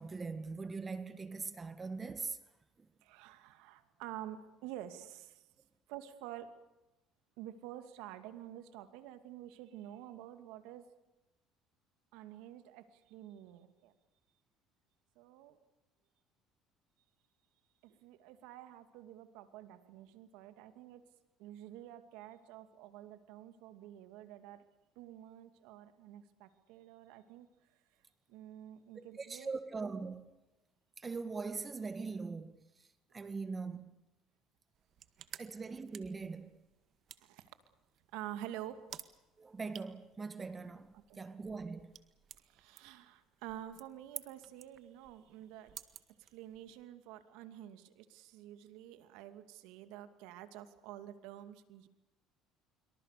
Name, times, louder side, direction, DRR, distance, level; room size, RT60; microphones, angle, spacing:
voice 1, 0.0-2.4 2.8-2.9 29.0-30.2 31.0-32.5 33.1-33.9 35.4-36.5 39.4-40.9 41.2-41.9, right 4 dB, 25° right, 2.0 m, -41 dB
voice 2, 3.0-5.4 5.9-6.5 7.4-10.9 12.1-13.9 15.2-15.6 17.8-21.0 21.4-24.6 25.0-27.5 28.3-29.5 37.2-37.5 38.1-38.8 40.9-41.2 42.4-45.7 46.2-51.9, right 12 dB, 80° right, 2.5 m, -49 dB
sound 1, 34.7-46.8, right 10 dB, 55° right, 1.8 m, -55 dB
26.5 x 24.0 x 6.8 m
supercardioid pair, 100°, 0 cm